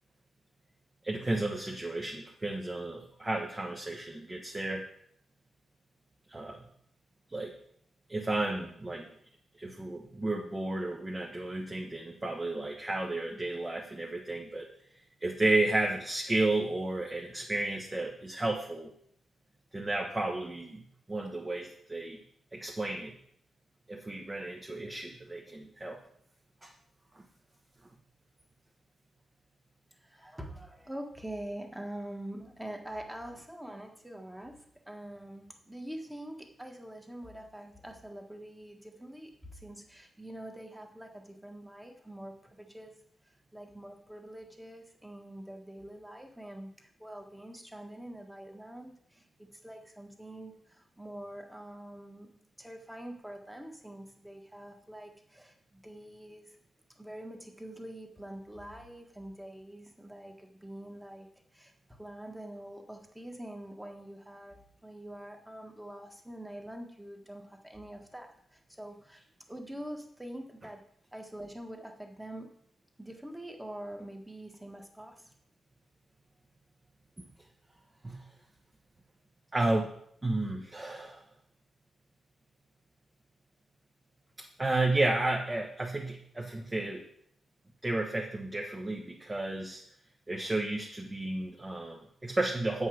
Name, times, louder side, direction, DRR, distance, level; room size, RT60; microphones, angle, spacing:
voice 1, 1.0-4.8 6.3-6.7 7.3-7.5 8.1-9.1 9.6-14.7 15.2-18.9 19.7-22.2 22.5-23.1 23.9-26.0 26.6-26.7 27.1-27.2 77.2-77.3 78.0-78.2 79.5-79.9 80.2-81.2 84.6-87.0 87.8-89.8 90.3-92.9, right 2 dB, 20° right, 0 dB, 1.1 m, -32 dB
voice 2, 30.0-42.9 43.5-56.6 57.0-61.7 62.0-69.2 69.5-72.5 73.0-75.3, right 1 dB, 5° right, 3 dB, 1.5 m, -45 dB
8.1 x 5.5 x 6.3 m, 0.67 s
cardioid pair, 105°, 0 cm